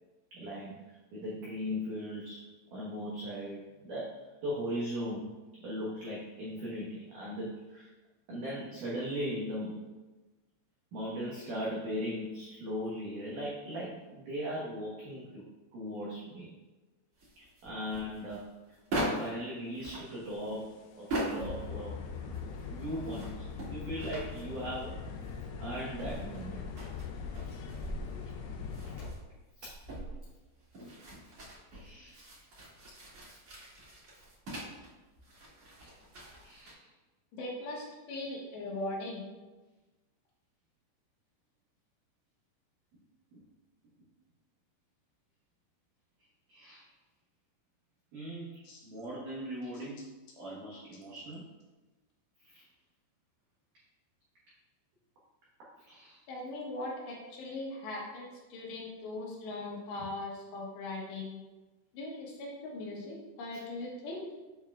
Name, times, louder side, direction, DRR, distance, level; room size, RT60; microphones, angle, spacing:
voice 1, 0.3-7.9 8.3-9.8 10.9-16.5 17.6-18.5 18.9-20.7 21.0-22.4 22.7-25.0 25.6-26.6 29.6-29.7 31.7-32.2 35.8-35.9 36.4-36.9 43.3-43.4 46.5-46.9 48.1-50.0 50.4-51.4 52.4-52.6 55.6-56.2, equal, 80° right, -6 dB, 1.8 m, -39 dB
sound 1, 17.2-19.4 19.7-21.7 22.0-25.4 25.8-34.9 35.2-36.7, right 1 dB, 40° right, 2.5 m, -41 dB
sound 2, 20.2-20.5 20.9-21.0 21.4-29.1, left 6 dB, 90° left, 2.4 m, -41 dB
voice 2, 37.3-39.2 48.6-48.8 56.3-61.4 61.9-64.2, left 2 dB, 70° left, -2 dB, 2.9 m, -40 dB
8.4 x 7.0 x 2.4 m, 1.2 s
omnidirectional pair, 5.6 m